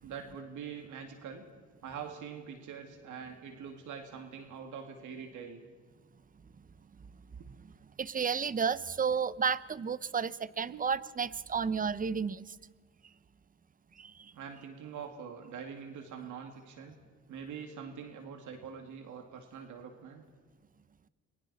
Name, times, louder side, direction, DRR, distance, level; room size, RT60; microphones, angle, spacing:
voice 1, 0.0-1.4 1.8-5.6 10.7-10.9 14.3-17.0 17.3-20.2, right 7 dB, 80° right, 4 dB, 2.3 m, -44 dB
voice 2, 8.0-12.5 14.0-14.3, right 6 dB, 30° right, 18 dB, 0.7 m, -32 dB
29.5 x 22.5 x 4.2 m, 1.5 s
cardioid pair, 90°, 30 cm